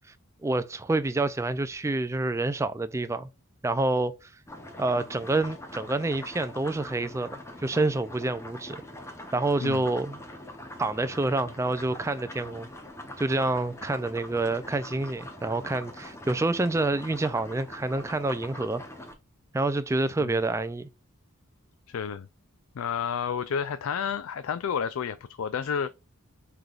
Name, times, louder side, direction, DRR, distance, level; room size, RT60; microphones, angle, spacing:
voice 1, 0.4-3.3 3.6-4.3 4.8-8.8 9.3-10.2 10.8-12.7 13.2-18.8 19.5-20.9, right 2 dB, 15° right, 0.3 m, -28 dB
sound 1, 4.5-19.2, left 1 dB, 10° left, 0.8 m, -43 dB
voice 2, 21.9-22.3 22.8-25.9, left 7 dB, 70° left, 0.4 m, -30 dB
5.8 x 3.4 x 2.4 m
head